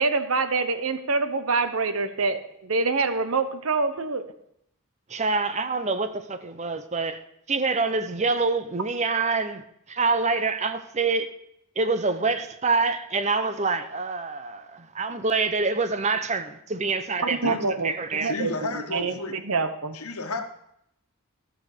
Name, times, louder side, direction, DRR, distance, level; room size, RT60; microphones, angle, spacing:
voice 1, 0.0-4.2 17.2-20.0, right 4 dB, 75° right, 1.0 m, -26 dB
voice 2, 5.1-7.2 7.5-11.3 11.8-17.6 17.8-18.3, right 4 dB, 30° right, 0.8 m, -26 dB
voice 3, 18.2-19.4 19.9-20.4, left 2 dB, 90° left, 1.4 m, -32 dB
14.5 x 6.4 x 6.7 m
head